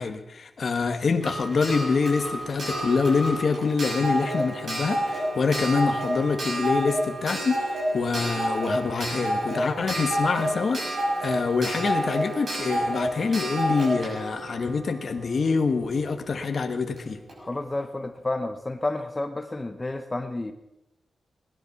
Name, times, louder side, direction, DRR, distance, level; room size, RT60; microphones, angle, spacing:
voice 1, 0.0-17.2, left 4 dB, 50° left, 6 dB, 1.3 m, -26 dB
Clock, 1.2-15.8 17.0-17.1 17.3-17.4, right 1 dB, 50° right, 6.3 m, -29 dB
voice 2, 17.4-20.5, left 2 dB, 20° left, 8 dB, 0.8 m, -30 dB
19.5 x 11.0 x 5.9 m, 0.91 s
wide cardioid pair, 150°, 0 cm